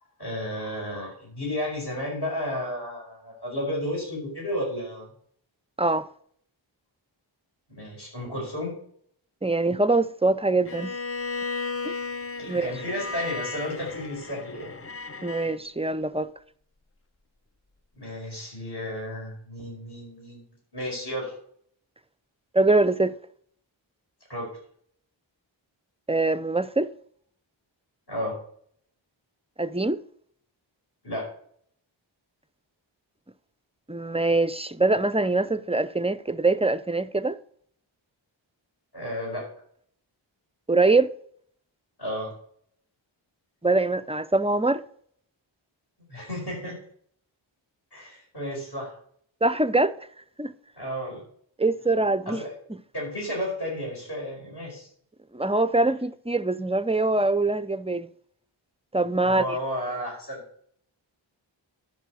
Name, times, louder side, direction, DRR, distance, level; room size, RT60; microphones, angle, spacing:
voice 1, 0.2-5.1 7.7-8.7 12.4-14.7 18.0-20.4 20.7-21.4 24.3-24.6 28.1-28.4 31.0-31.3 38.9-39.5 42.0-42.3 46.1-46.8 47.9-49.0 50.8-51.2 52.3-52.5 52.9-54.9 59.2-60.4, left 1 dB, 55° left, 5.2 m, -32 dB
voice 2, 9.4-10.9 11.8-11.9 12.5-12.7 15.2-16.3 22.5-23.1 26.1-26.9 29.6-30.0 33.9-37.4 40.7-41.1 43.6-44.8 49.4-49.9 50.4-50.5 51.6-52.4 55.3-58.1 58.9-59.6, right 2 dB, 15° right, 0.4 m, -23 dB
Bowed string instrument, 10.7-15.6, left 3 dB, 30° left, 0.7 m, -34 dB
12.5 x 5.5 x 6.2 m
wide cardioid pair, 55°, 47 cm